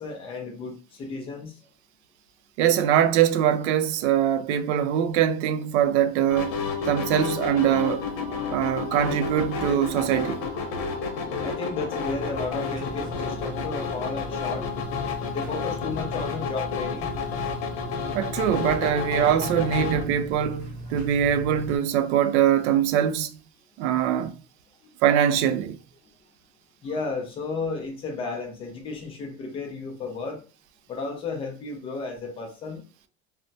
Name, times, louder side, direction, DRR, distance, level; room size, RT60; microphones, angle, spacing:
voice 1, 0.0-1.6 11.4-14.7 15.3-17.1 24.8-24.9 26.8-30.4 30.9-32.8, left 3 dB, 15° left, 0.4 m, -33 dB
voice 2, 2.6-8.1 8.5-10.4 18.1-23.3 23.8-24.3 25.0-25.8, right 9 dB, 80° right, 0.5 m, -23 dB
sound 1, 6.3-20.0, left 5 dB, 80° left, 0.8 m, -31 dB
sound 2, 12.0-21.8, right 1 dB, 20° right, 0.7 m, -38 dB
3.2 x 2.0 x 2.6 m
cardioid pair, 170°, 33 cm